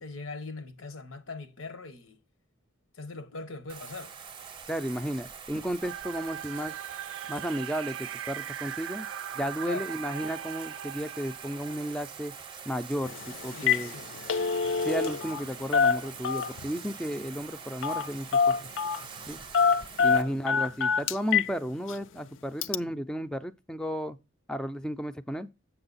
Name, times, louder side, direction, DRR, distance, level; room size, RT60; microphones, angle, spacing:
voice 1, 0.0-2.2 2.9-4.2 9.6-10.0 13.5-14.1 20.1-20.4, left 3 dB, 90° left, 1.1 m, -41 dB
Bathtub (filling or washing), 3.7-20.2, right 6 dB, 25° right, 0.7 m, -45 dB
voice 2, 4.7-6.8 7.3-9.1 9.3-12.3 12.7-13.9 14.8-18.5 19.3-19.4 20.0-24.2 24.5-25.5, equal, 5° left, 0.3 m, -33 dB
sound 1, 5.8-12.6, right 10 dB, 75° right, 0.4 m, -40 dB
Telephone, 13.1-13.2 13.5-13.9 14.1-15.4 15.7-16.7 17.8-18.1 18.3-19.0 19.5-21.5 21.9-22.0 22.6-22.8, left 6 dB, 70° left, 0.4 m, -25 dB
7.8 x 6.2 x 4.0 m
head